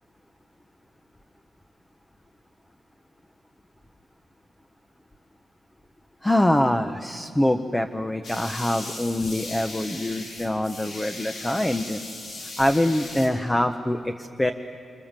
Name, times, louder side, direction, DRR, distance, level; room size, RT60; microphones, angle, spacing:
voice 1, 6.2-14.5, left 1 dB, 10° left, 7 dB, 0.7 m, -24 dB
sound 1, 8.2-13.3, left 2 dB, 75° left, 6.3 m, -38 dB
30.0 x 26.5 x 7.4 m, 2.7 s
wide cardioid pair, 165°, 0 cm